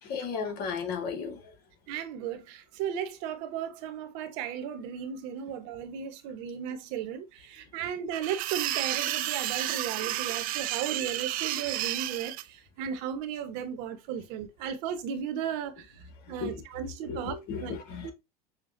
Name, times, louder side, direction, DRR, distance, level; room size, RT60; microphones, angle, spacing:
voice 1, 0.0-1.4 16.4-16.6 17.1-18.1, left 6 dB, 50° left, 1.4 m, -34 dB
voice 2, 1.9-15.9 16.3-17.7 18.0-18.1, right 8 dB, 60° right, 1.0 m, -35 dB
sound 1, 8.1-12.4, right 15 dB, 45° right, 0.5 m, -31 dB
6.5 x 2.3 x 2.6 m
hypercardioid pair, 95°, 20 cm